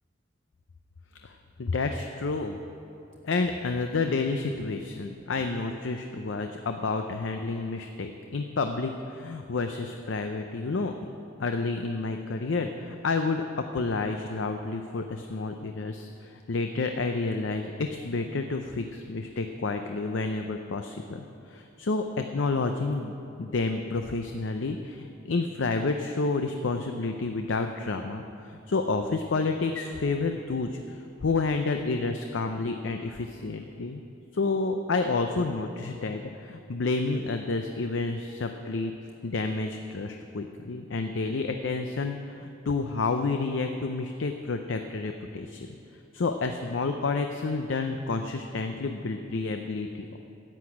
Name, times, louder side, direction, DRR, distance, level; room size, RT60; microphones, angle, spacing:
voice 1, 1.2-2.6 3.2-10.9 11.4-34.0 34.3-38.9 39.2-45.7 46.1-50.2, left 3 dB, 70° left, 6 dB, 0.6 m, -30 dB
10.5 x 8.0 x 8.5 m, 2.7 s
head